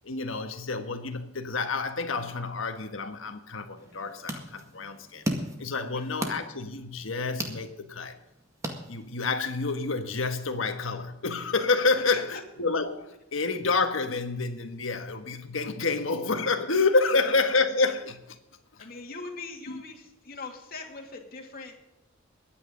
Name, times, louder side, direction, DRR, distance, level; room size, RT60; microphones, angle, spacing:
voice 1, 0.0-5.2 5.6-8.2 8.9-18.4 19.7-19.8, left 3 dB, 75° left, 6 dB, 1.5 m, -28 dB
sound 1, 3.8-9.4, right 1 dB, 15° right, 1.9 m, -37 dB
voice 2, 18.8-21.9, left 3 dB, 50° left, 1 dB, 2.6 m, -41 dB
22.5 x 9.3 x 3.9 m, 0.91 s
head